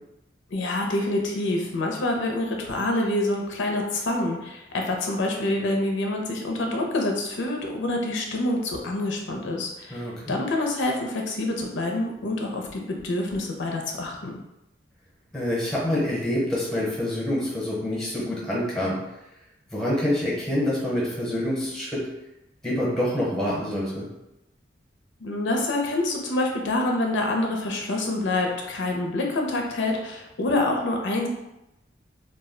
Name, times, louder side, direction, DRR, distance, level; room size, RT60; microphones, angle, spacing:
voice 1, 0.5-14.4 25.2-31.3, left 2 dB, 80° left, 1 dB, 0.5 m, -26 dB
voice 2, 9.9-10.4 15.3-19.0 19.7-22.0 22.6-24.1, left 1 dB, ahead, -7 dB, 0.7 m, -26 dB
2.3 x 2.1 x 3.6 m, 0.91 s
head